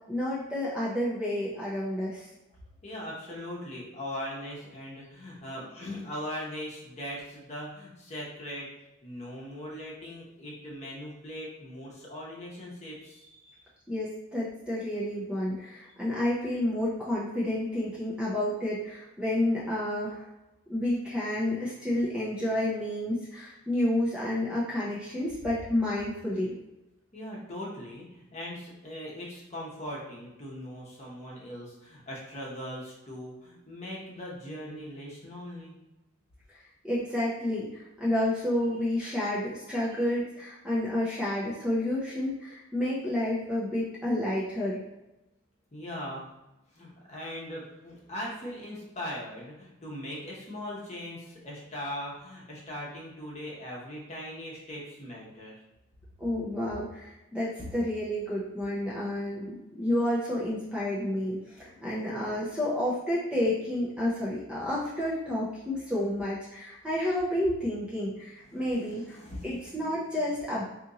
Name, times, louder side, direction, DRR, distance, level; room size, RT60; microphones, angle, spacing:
voice 1, 0.1-2.3 13.9-20.3 20.7-26.5 36.5-44.9 56.2-70.6, left 1 dB, 5° right, -8 dB, 0.5 m, -30 dB
voice 2, 2.8-8.7 9.0-13.6 27.1-35.7 39.9-40.0 45.7-46.3 46.7-55.6 68.5-69.7, equal, 30° left, -4 dB, 0.9 m, -40 dB
2.8 x 2.6 x 3.7 m, 0.96 s
head